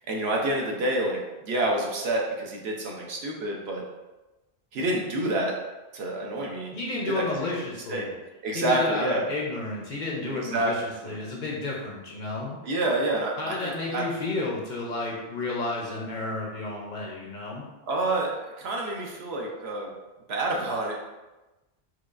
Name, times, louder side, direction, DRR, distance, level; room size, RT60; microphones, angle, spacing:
voice 1, 0.1-1.2 1.4-3.8 4.7-5.6 5.9-6.8 7.1-8.1 8.4-9.2 10.3-10.7 11.0-11.2 12.6-14.0 17.9-19.9 20.3-21.0, right 1 dB, 70° right, -1 dB, 0.9 m, -28 dB
voice 2, 6.7-8.1 8.5-12.6 13.4-17.7, left 2 dB, 50° left, -3 dB, 0.6 m, -32 dB
4.6 x 2.3 x 2.4 m, 1.1 s
omnidirectional pair, 1.1 m